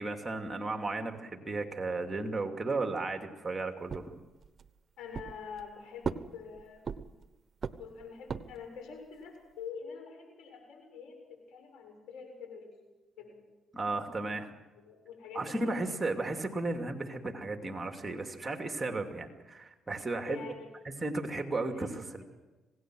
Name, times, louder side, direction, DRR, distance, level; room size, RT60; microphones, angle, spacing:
voice 1, 0.0-4.2 13.7-14.6 15.3-20.4 20.8-22.2, right 2 dB, 20° right, 4 dB, 2.6 m, -34 dB
sound 1, 3.9-4.7 5.1-5.7 6.0-7.3 7.6-8.7, right 5 dB, 45° right, 1.0 m, -38 dB
voice 2, 5.0-6.9 7.8-11.2 11.5-12.7 13.2-13.4 14.8-15.9 20.2-20.7 21.7-21.9, left 6 dB, 85° left, 4 dB, 7.2 m, -46 dB
26.5 x 18.0 x 6.3 m, 1.2 s
cardioid pair, 90°, 0 cm